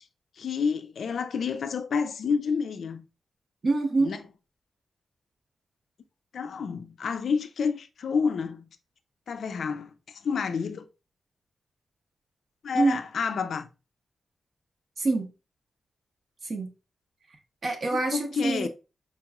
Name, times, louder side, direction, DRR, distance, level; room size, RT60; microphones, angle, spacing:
voice 1, 0.4-3.0 4.0-4.2 6.3-8.7 9.3-9.9 10.2-10.9 12.6-13.7 18.1-18.7, left 5 dB, 65° left, 0.3 m, -29 dB
voice 2, 3.6-4.2 12.7-13.0 15.0-15.3 16.4-16.7 17.6-18.7, right 3 dB, 40° right, 0.8 m, -25 dB
4.5 x 2.9 x 2.3 m
wide cardioid pair, 180°, 0 cm